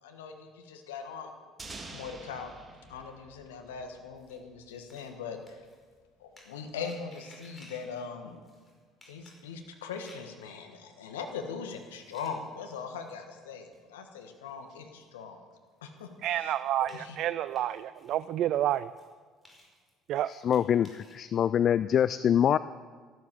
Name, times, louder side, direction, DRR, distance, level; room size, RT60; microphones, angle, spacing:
voice 1, 0.0-1.3 1.9-2.5 2.9-5.4 6.2-8.4 9.1-15.4 15.8-16.1 16.4-16.5 16.8-17.2, left 6 dB, 75° left, 5 dB, 1.5 m, -40 dB
sound 1, 1.6-4.4, right 3 dB, 25° right, 2.5 m, -47 dB
sound 2, 4.2-4.4 4.7-5.1 5.5-5.9 6.4-8.0 8.4-8.7 9.0-10.4 11.0-11.1 11.7-12.6 13.1-13.2 13.7-13.8 14.5-14.6 15.0-15.1 15.5-15.6 16.0-18.2 18.5-19.1 19.4-21.2, left 1 dB, 20° left, 5.2 m, -57 dB
voice 2, 16.2-18.9 20.1-20.3, right 12 dB, 55° right, 16 dB, 0.3 m, -29 dB
voice 3, 20.2-22.6, left 9 dB, 50° left, 16 dB, 0.4 m, -25 dB
14.0 x 12.5 x 6.9 m, 1.6 s
figure-of-eight pair, 55°, 0 cm